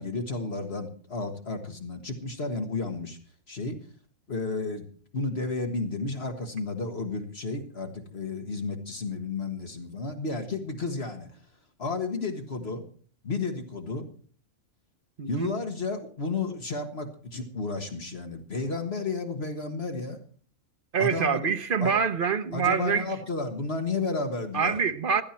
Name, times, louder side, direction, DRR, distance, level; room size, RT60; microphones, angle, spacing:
voice 1, 0.0-3.2 3.5-3.8 4.3-4.8 5.1-11.3 11.8-12.8 13.2-14.1 15.3-20.2 21.0-21.5 21.8-21.9 22.5-24.8, left 3 dB, 50° left, 1.8 m, -32 dB
voice 2, 15.2-15.5 20.9-23.1 24.5-25.2, right 6 dB, 45° right, 1.0 m, -25 dB
15.5 x 12.5 x 4.4 m
omnidirectional pair, 1.4 m